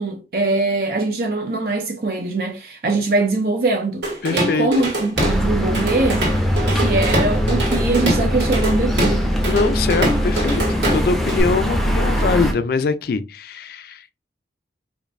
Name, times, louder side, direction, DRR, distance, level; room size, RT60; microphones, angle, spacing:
voice 1, 0.0-4.0 4.3-6.3 6.7-9.2, right 2 dB, 55° right, 0.5 m, -22 dB
Drum kit / Drum, 4.0-5.4 5.7-11.4, right 1 dB, 85° right, 1.8 m, -23 dB
voice 2, 4.2-4.7 9.5-14.1, left 4 dB, 55° left, 0.4 m, -23 dB
sound 1, 5.2-12.5, equal, ahead, 0.5 m, -21 dB
5.0 x 2.6 x 2.5 m
head